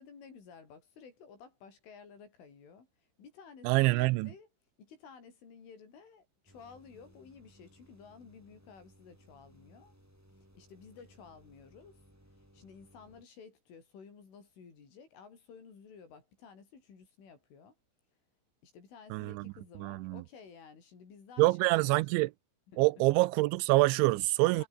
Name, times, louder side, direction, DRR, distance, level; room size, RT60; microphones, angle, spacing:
voice 1, 0.0-4.5 4.8-9.9 10.6-12.0 12.5-17.8 18.6-22.0 22.7-22.8 24.1-24.7, left 6 dB, 85° left, 8.8 m, -54 dB
voice 2, 3.6-4.3 19.1-19.5 19.8-20.2 21.4-22.3 22.8-24.6, right 21 dB, 80° right, 2.9 m, -26 dB
sound 1, 6.5-13.2, equal, 5° right, 7.4 m, -62 dB
omnidirectional pair, 5.5 m